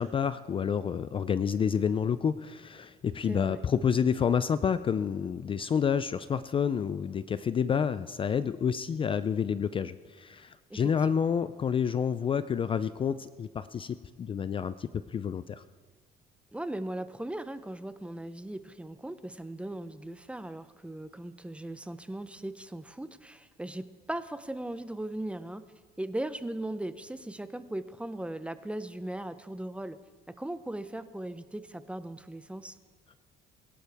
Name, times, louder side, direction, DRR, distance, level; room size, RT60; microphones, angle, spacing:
voice 1, 0.0-15.6, left 7 dB, 30° left, 14 dB, 0.4 m, -29 dB
voice 2, 3.3-3.6 10.7-11.3 16.5-25.6 26.0-30.0 30.4-32.8, right 1 dB, 5° right, 12 dB, 0.6 m, -38 dB
22.0 x 11.5 x 3.5 m, 1.5 s
cardioid pair, 110°, 17 cm